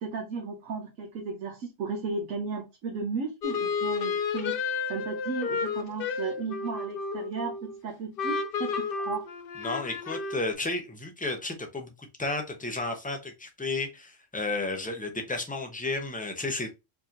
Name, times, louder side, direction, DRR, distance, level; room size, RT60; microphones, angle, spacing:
voice 1, 0.0-4.6 4.9-9.2, right 4 dB, 90° right, 2 dB, 1.2 m, -35 dB
sound 1, 3.4-7.8 8.2-10.5, left 5 dB, 60° left, 0.6 m, -32 dB
voice 2, 9.6-16.7, left 2 dB, 10° left, 4 dB, 0.4 m, -32 dB
4.6 x 2.8 x 2.5 m, 0.24 s
omnidirectional pair, 1.3 m